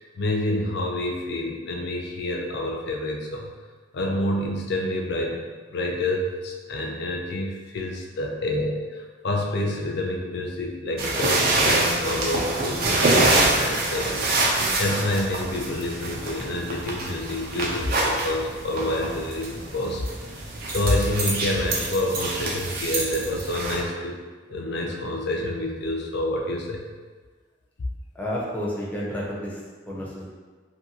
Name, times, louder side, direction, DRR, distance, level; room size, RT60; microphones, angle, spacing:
voice 1, 0.0-3.5 3.9-5.4 5.7-20.0 20.7-24.2 24.5-26.8, left 1 dB, 55° left, 0 dB, 0.5 m, -28 dB
sound 1, 11.0-23.8, right 2 dB, 50° right, 0.4 m, -26 dB
voice 2, 28.1-29.6 29.9-30.3, equal, 10° left, -6 dB, 0.5 m, -30 dB
2.7 x 2.6 x 2.8 m, 1.4 s
head